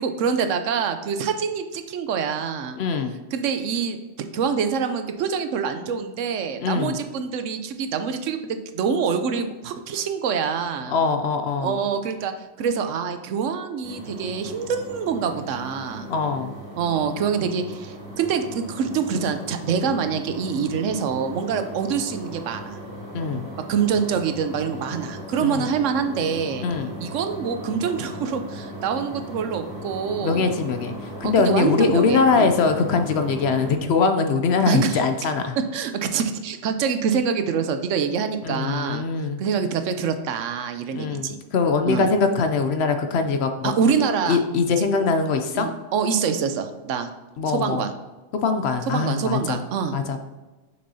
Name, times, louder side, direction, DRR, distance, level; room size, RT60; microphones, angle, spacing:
voice 1, 0.0-2.8 3.3-4.0 4.3-11.0 11.6-12.3 12.6-16.1 16.8-22.8 23.7-26.7 27.0-30.5 31.2-32.5 34.7-35.0 35.7-39.0 39.4-41.4 41.9-42.1 43.6-44.4 44.8-45.1 45.5-47.1 47.5-47.9 48.9-50.0, right 6 dB, 75° right, 8 dB, 0.9 m, -25 dB
voice 2, 2.8-3.2 6.6-7.0 10.9-11.8 16.1-16.5 23.1-23.5 25.4-25.6 26.6-26.9 30.2-35.6 38.4-39.4 40.9-43.7 44.3-45.7 47.4-47.9 48.4-49.6 49.9-50.2, left 4 dB, 65° left, 7 dB, 0.7 m, -22 dB
sound 1, 13.8-33.8, equal, 15° right, 1.9 m, -38 dB
6.2 x 6.1 x 2.7 m, 1.2 s
omnidirectional pair, 1.3 m